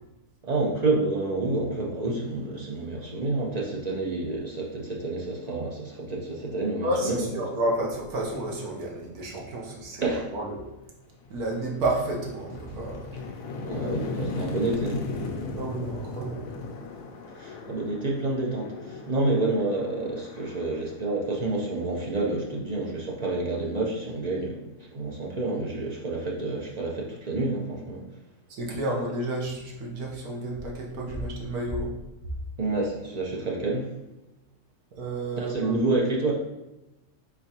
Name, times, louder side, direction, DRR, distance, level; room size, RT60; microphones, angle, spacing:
voice 1, 0.4-7.2 10.0-10.2 13.6-15.0 17.4-28.0 32.6-33.9 35.4-36.3, right 2 dB, 55° right, -2 dB, 0.4 m, -28 dB
voice 2, 6.8-10.7 11.3-13.1 15.5-16.5 28.5-31.9 34.9-35.8, right 1 dB, 75° right, -2 dB, 1.4 m, -31 dB
sound 1, 10.5-10.6 11.0-21.8, left 3 dB, 85° left, 1.2 m, -37 dB
4.4 x 4.3 x 2.8 m, 0.99 s
omnidirectional pair, 1.6 m